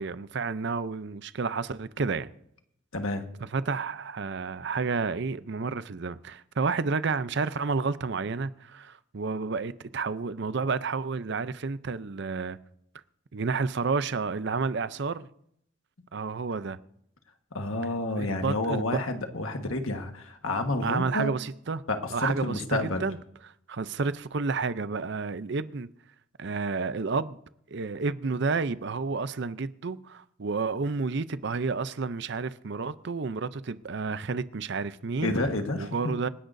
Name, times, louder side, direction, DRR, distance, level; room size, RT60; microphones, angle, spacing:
voice 1, 0.0-2.3 3.5-12.6 13.3-15.3 16.1-16.8 18.2-19.0 20.8-21.8 22.1-23.2 23.7-25.9 26.4-27.4 27.7-35.3 35.8-36.3, right 4 dB, 60° right, 0.6 m, -30 dB
voice 2, 2.9-3.2 17.5-21.3 21.9-23.0 35.2-35.9, left 2 dB, 85° left, 1.5 m, -29 dB
27.0 x 10.5 x 2.7 m
head